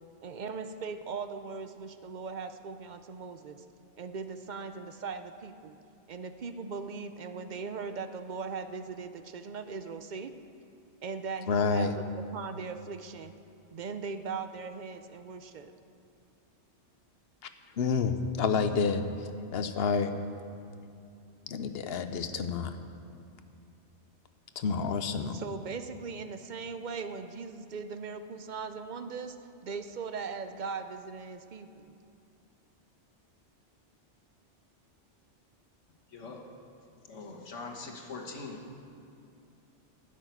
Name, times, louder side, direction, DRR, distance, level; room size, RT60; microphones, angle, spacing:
voice 1, 0.2-3.6 4.0-5.8 6.1-10.3 11.0-13.3 13.7-15.7 25.3-29.4 29.6-31.9, right 5 dB, 50° right, 9 dB, 0.6 m, -39 dB
voice 2, 11.5-12.0 17.8-20.1 21.5-22.7 24.6-25.4, left 5 dB, 60° left, 9 dB, 0.9 m, -29 dB
voice 3, 36.1-36.4 37.1-38.6, left 3 dB, 90° left, 1 dB, 1.7 m, -42 dB
12.5 x 6.5 x 9.1 m, 2.6 s
omnidirectional pair, 1.2 m